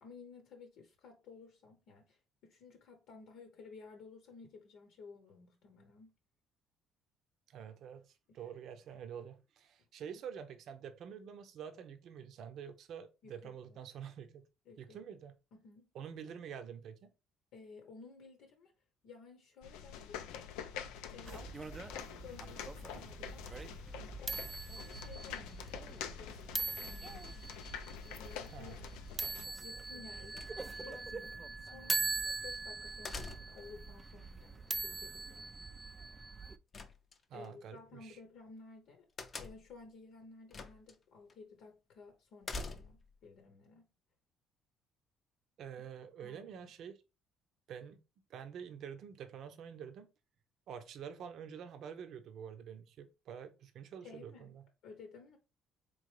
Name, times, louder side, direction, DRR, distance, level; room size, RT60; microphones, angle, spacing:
voice 1, 0.0-6.1 8.3-8.5 13.2-13.8 14.6-15.0 15.6-15.9 17.5-18.7 19.0-20.2 21.1-26.4 26.8-27.5 28.0-29.2 29.6-32.1 32.4-35.5 37.3-39.1 39.3-43.8 46.2-46.7 54.0-54.5 54.8-55.4, left 4 dB, 75° left, 0.9 m, -55 dB
voice 2, 7.5-14.4 14.8-15.3 15.9-17.1 28.5-28.8 37.3-38.2 45.6-47.0 47.7-48.0 48.3-50.1 50.7-54.6, right 8 dB, 65° right, 0.6 m, -47 dB
sound 1, 19.6-29.5, left 8 dB, 90° left, 0.4 m, -46 dB
sound 2, 21.3-36.6, right 3 dB, 20° right, 0.4 m, -42 dB
sound 3, 30.3-31.0 33.0-33.7 36.7-37.5 39.2-39.8 40.5-40.9 41.3-41.4 42.4-43.1, left 3 dB, 40° left, 0.6 m, -44 dB
3.9 x 3.0 x 3.2 m
supercardioid pair, 85°, 0 cm